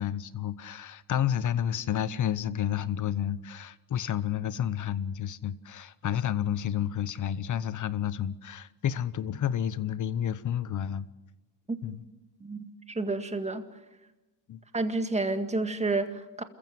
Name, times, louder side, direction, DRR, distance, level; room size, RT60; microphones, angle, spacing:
voice 1, 0.0-11.1 11.8-12.0 14.5-14.6, left 10 dB, 40° left, 0.9 m, -30 dB
voice 2, 12.4-13.7 14.7-16.4, right 3 dB, 15° right, 1.9 m, -30 dB
27.5 x 15.0 x 7.8 m
supercardioid pair, 95°, 48 cm